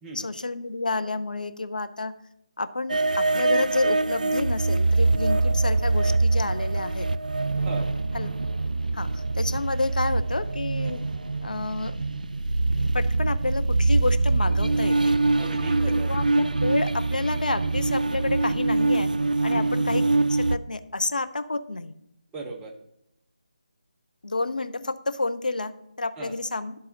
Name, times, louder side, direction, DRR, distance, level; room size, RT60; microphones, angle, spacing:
voice 1, 0.1-2.1 2.6-7.1 8.1-8.5 8.9-11.0 11.4-11.9 12.8-15.2 16.1-19.1 19.4-21.9 24.2-25.7 26.0-26.7, left 2 dB, 75° left, 10 dB, 0.5 m, -29 dB
sound 1, 2.9-20.6, right 3 dB, 70° right, 0.3 m, -24 dB
voice 2, 15.4-16.1 19.5-19.8 22.3-22.7 26.2-26.4, right 2 dB, 10° right, 0 dB, 0.6 m, -37 dB
12.0 x 4.1 x 3.8 m, 0.77 s
figure-of-eight pair, 155°, 5 cm